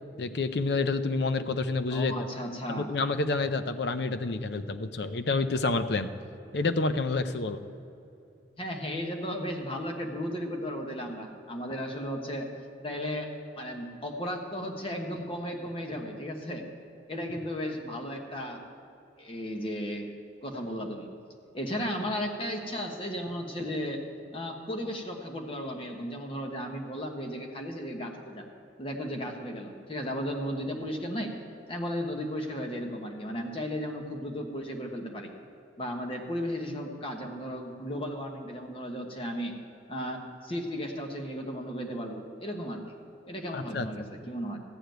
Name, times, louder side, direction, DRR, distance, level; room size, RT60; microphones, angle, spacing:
voice 1, 0.2-2.1 2.7-6.1 6.5-7.6 43.5-43.8, left 3 dB, 60° left, 10 dB, 0.6 m, -28 dB
voice 2, 1.9-2.9 8.6-12.5 12.8-13.3 13.5-16.6 17.1-18.6 19.2-20.1 20.4-21.1 21.5-24.0 24.3-28.4 28.8-31.3 31.7-35.3 35.8-39.5 39.9-42.8 43.3-44.6, equal, 30° left, 2 dB, 1.2 m, -35 dB
14.0 x 5.0 x 9.1 m, 2.8 s
head